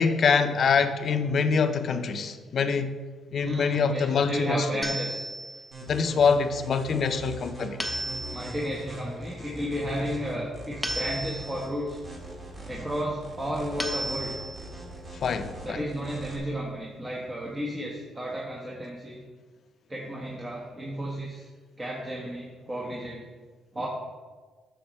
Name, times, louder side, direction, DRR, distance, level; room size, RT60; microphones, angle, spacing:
voice 1, 0.0-2.9 3.3-4.8 5.8-7.8 15.2-15.8, left 5 dB, 55° left, 9 dB, 0.6 m, -25 dB
voice 2, 3.4-5.2 8.3-12.0 12.7-14.3 15.6-19.2 19.9-21.5 21.8-23.2 23.7-23.9, equal, 20° right, -3 dB, 1.3 m, -33 dB
sound 1, 4.8-5.7 7.8-8.7 10.8-11.7 13.8-14.7, right 1 dB, ahead, 1.1 m, -34 dB
sound 2, 5.7-16.4, right 1 dB, 35° right, 2.0 m, -41 dB
9.3 x 6.5 x 3.1 m, 1.4 s
cardioid pair, 90°, 0 cm